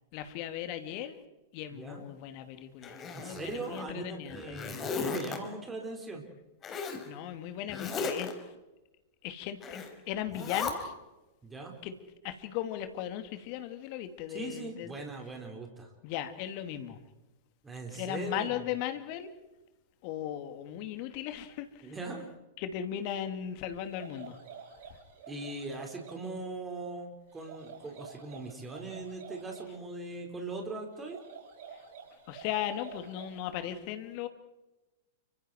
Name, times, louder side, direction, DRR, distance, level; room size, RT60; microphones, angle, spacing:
voice 1, 0.1-1.2 1.5-4.6 7.1-8.5 9.2-9.8 10.1-10.9 11.8-12.0 12.2-15.0 16.0-17.0 17.9-19.3 20.0-21.9 22.6-24.4 31.7-31.8 32.3-34.3, left 11 dB, 45° left, 2.7 m, -37 dB
voice 2, 1.7-2.0 3.1-6.2 11.4-11.7 14.3-15.9 17.6-18.6 21.8-22.2 25.3-31.2, right 3 dB, 15° right, 5.2 m, -40 dB
Zipper (clothing), 2.8-3.8 4.3-5.4 6.6-7.0 7.7-8.3 9.6-9.9 10.3-10.7, left 5 dB, 25° left, 4.4 m, -36 dB
sound 1, 23.8-26.3 27.3-29.8 30.9-33.5, right 6 dB, 55° right, 6.6 m, -49 dB
30.0 x 26.0 x 4.7 m
figure-of-eight pair, 105°, 0 cm